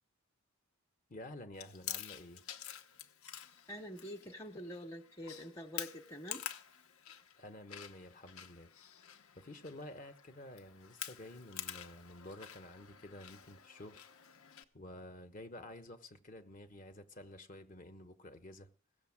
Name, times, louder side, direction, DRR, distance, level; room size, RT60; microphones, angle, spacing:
voice 1, 1.1-2.4 7.4-8.7 9.4-14.0 14.7-18.7, left 1 dB, 40° left, 1.0 m, -51 dB
Chewing mastication, 1.5-14.6, left 10 dB, 85° left, 1.1 m, -49 dB
voice 2, 3.7-6.5, equal, 15° left, 1.0 m, -46 dB
17.0 x 7.0 x 7.2 m
head